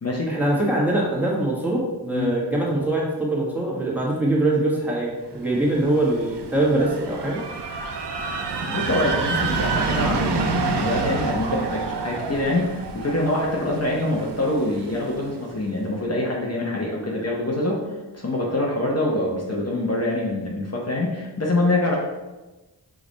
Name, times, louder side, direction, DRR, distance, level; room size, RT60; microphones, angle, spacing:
voice 1, 0.3-7.4, right 1 dB, 5° right, -5 dB, 1.4 m, -23 dB
sound 1, 5.5-15.3, right 5 dB, 85° right, 0.6 m, -28 dB
voice 2, 8.6-17.8 18.1-22.0, left 1 dB, 40° left, -3 dB, 0.8 m, -25 dB
5.0 x 2.5 x 4.0 m, 1.1 s
wide cardioid pair, 55°, 40 cm